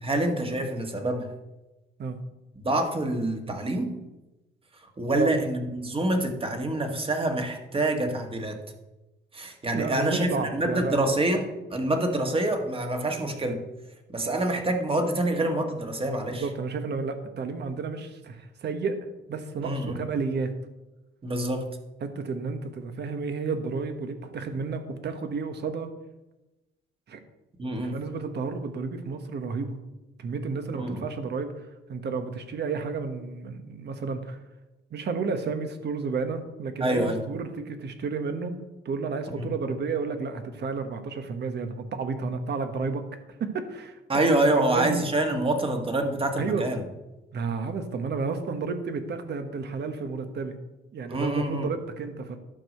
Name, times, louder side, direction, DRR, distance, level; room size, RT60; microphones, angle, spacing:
voice 1, 0.0-1.3 2.5-4.0 5.0-8.6 9.3-13.6 14.1-16.5 19.6-20.0 21.2-21.7 27.6-28.0 30.7-31.1 36.8-37.2 39.4-39.5 44.1-46.8 51.1-51.7, right 1 dB, 25° right, 4 dB, 1.7 m, -26 dB
voice 2, 9.7-11.0 16.3-19.0 19.3-20.5 22.0-25.9 27.1-27.2 27.7-29.8 30.2-31.5 31.9-34.4 34.9-38.5 38.8-43.0 43.4-45.0 46.4-46.7 47.3-50.6 50.9-52.4, right 4 dB, 60° right, 8 dB, 1.3 m, -31 dB
11.5 x 4.7 x 6.6 m, 1.0 s
cardioid pair, 90°, 20 cm